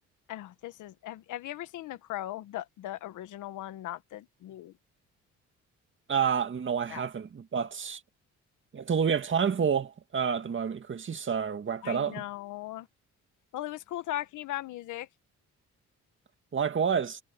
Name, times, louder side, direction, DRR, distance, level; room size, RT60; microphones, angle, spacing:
voice 1, 0.3-4.7 6.9-7.0 11.8-12.9 13.5-15.1, left 14 dB, 85° left, 1.6 m, -38 dB
voice 2, 6.1-8.0 8.7-12.2 16.5-17.2, right 7 dB, 40° right, 2.1 m, -29 dB
cardioid pair, 90°, 30 cm